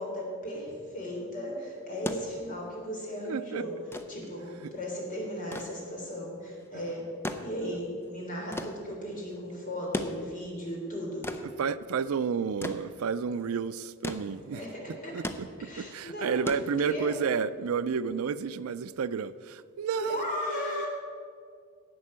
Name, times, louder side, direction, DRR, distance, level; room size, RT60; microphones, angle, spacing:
voice 1, 0.0-3.7 4.1-7.0 7.4-11.4 14.5-15.2 15.6-16.5 16.8-17.1 20.0-20.9, left 1 dB, 40° left, -2 dB, 3.4 m, -36 dB
sound 1, 1.8-17.3 18.6-18.7, left 1 dB, 10° left, 0.6 m, -40 dB
voice 2, 3.2-3.6 4.6-4.7 7.6-7.7 11.6-14.6 15.1-20.9, right 6 dB, 80° right, 15 dB, 0.4 m, -31 dB
11.0 x 8.2 x 7.4 m, 2.2 s
head